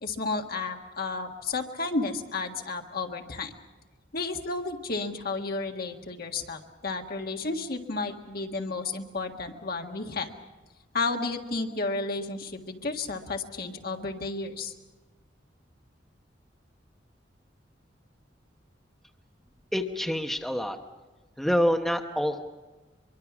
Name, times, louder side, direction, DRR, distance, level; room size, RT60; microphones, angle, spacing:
voice 1, 0.0-3.5 4.1-10.3 10.9-14.7, left 3 dB, 55° left, 3 dB, 1.7 m, -32 dB
voice 2, 19.7-20.8 21.4-22.4, equal, ahead, 4 dB, 1.0 m, -26 dB
23.5 x 23.5 x 6.1 m, 1.2 s
head